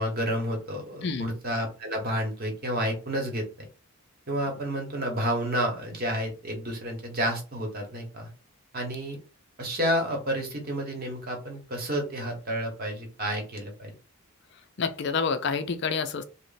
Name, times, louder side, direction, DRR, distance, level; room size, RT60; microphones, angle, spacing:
voice 1, 0.0-3.4 4.3-8.3 8.7-9.2 9.6-13.9, equal, 40° right, 1.0 m, -30 dB
voice 2, 14.8-16.2, left 5 dB, 50° left, 0.4 m, -28 dB
3.1 x 2.1 x 3.9 m
head